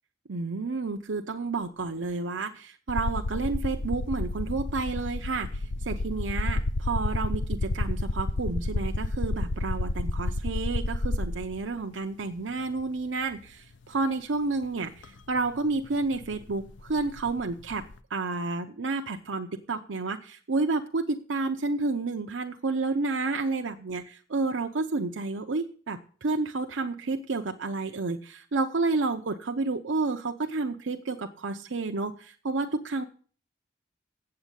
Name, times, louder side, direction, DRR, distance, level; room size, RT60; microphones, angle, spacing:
voice 1, 0.3-17.8 18.1-33.0, right 3 dB, 85° right, 4 dB, 0.7 m, -30 dB
sound 1, 2.9-11.6 12.8-12.9 15.0-15.1 15.4-17.9, left 2 dB, 75° left, 0.6 m, -30 dB
8.2 x 7.7 x 8.3 m, 0.43 s
head